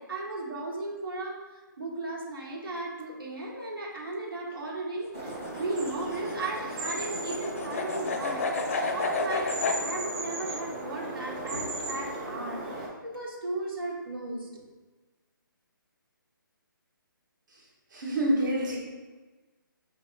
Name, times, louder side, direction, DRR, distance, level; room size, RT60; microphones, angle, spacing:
voice 1, 0.0-1.4 1.8-8.5 8.9-14.6, right 2 dB, 90° right, -3 dB, 1.4 m, -36 dB
sound 1, 5.1-9.8, left 3 dB, 40° left, 0.4 m, -31 dB
sound 2, 5.1-12.9, right 1 dB, 20° right, 0.6 m, -36 dB
voice 2, 17.9-18.8, right 1 dB, 60° right, -4 dB, 1.1 m, -26 dB
4.9 x 3.0 x 3.2 m, 1.3 s
hypercardioid pair, 165°, 12 cm